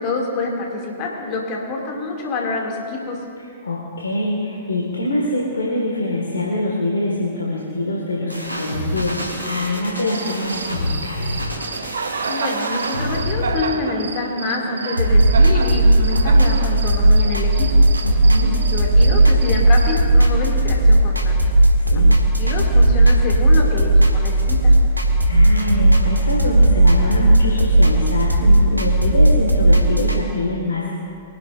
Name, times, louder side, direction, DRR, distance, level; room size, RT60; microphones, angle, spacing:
voice 1, 0.0-3.2 12.2-17.8 18.4-21.4 21.9-24.8, left 3 dB, 35° left, -1 dB, 2.3 m, -27 dB
voice 2, 3.6-11.4 18.0-18.5 21.8-22.1 25.3-30.9, left 1 dB, 70° left, -3 dB, 1.7 m, -24 dB
sound 1, 8.3-13.6, left 1 dB, 90° left, 2.9 m, -28 dB
Cricket, 10.0-20.1, right 5 dB, 65° right, 0.7 m, -30 dB
sound 2, 15.0-30.2, right 1 dB, 85° right, 1.3 m, -15 dB
22.5 x 11.0 x 2.5 m, 2.5 s
figure-of-eight pair, 105°, 0 cm